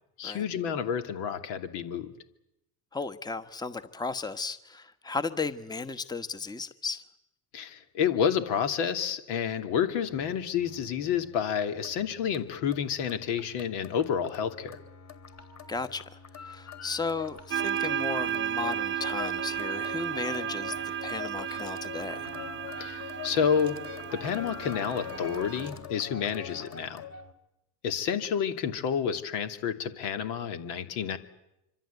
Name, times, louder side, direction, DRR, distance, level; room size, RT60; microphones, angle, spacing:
voice 1, 0.2-2.1 7.5-14.8 22.8-23.8 24.1-27.0 27.8-31.2, left 7 dB, 70° left, 7 dB, 2.7 m, -29 dB
voice 2, 2.9-7.0 15.7-22.3, left 4 dB, 10° left, 10 dB, 1.2 m, -35 dB
sound 1, 9.9-27.3, left 6 dB, 35° left, 3.3 m, -44 dB
sound 2, 17.5-25.7, right 10 dB, 25° right, 0.9 m, -34 dB
25.5 x 25.5 x 8.2 m, 0.87 s
hypercardioid pair, 70°, 45 cm